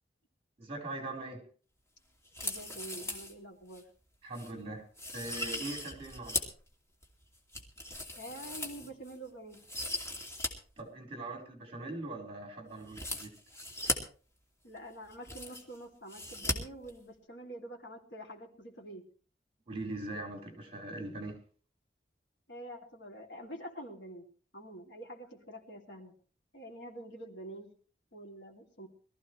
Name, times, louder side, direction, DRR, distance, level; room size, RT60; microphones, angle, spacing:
voice 1, 0.6-1.4 4.2-4.9 5.1-6.4 10.8-13.3 19.7-21.4, right 2 dB, 35° right, 1 dB, 4.4 m, -41 dB
sound 1, 2.2-3.3 3.7-3.8 4.3-4.5 5.0-6.6 7.0-9.1 9.5-10.5 10.8-10.9 12.9-14.0 14.8-14.9 15.0-15.8 16.1-16.5 16.8-16.9, left 1 dB, 15° left, 2.6 m, -38 dB
voice 2, 2.4-3.8 8.2-9.6 14.6-19.1 22.5-24.3 24.5-26.1 26.5-27.7 28.1-28.9, right 1 dB, 80° left, 2 dB, 3.0 m, -46 dB
22.5 x 14.5 x 3.2 m, 0.40 s
head